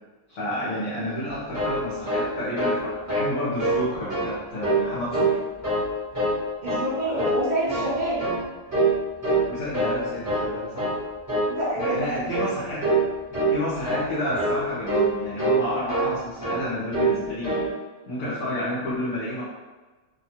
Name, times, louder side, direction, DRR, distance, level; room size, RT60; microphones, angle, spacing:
voice 1, 0.3-5.4 9.5-10.9 11.7-12.8 13.5-17.6 18.1-19.4, equal, 60° left, -9 dB, 1.0 m, -30 dB
sound 1, 1.5-2.8 3.1-3.3 3.6-4.3 4.6-5.4 5.6-6.4 6.7-6.9 7.2-7.9 8.2-8.4 8.7-9.0 9.2-10.0 10.2-10.5 10.8-11.0 11.3-11.5 11.8-12.0 12.3-12.5 12.8-13.1 13.3-13.6 13.8-14.1 14.4-14.6 14.9-15.1 15.4-16.2 16.4-16.6 16.9-17.2 17.4-17.7, right 2 dB, 15° right, 1.0 m, -24 dB
voice 2, 6.6-8.2 11.5-12.0, right 1 dB, 75° right, -8 dB, 0.4 m, -27 dB
2.8 x 2.3 x 2.8 m, 1.3 s
omnidirectional pair, 1.6 m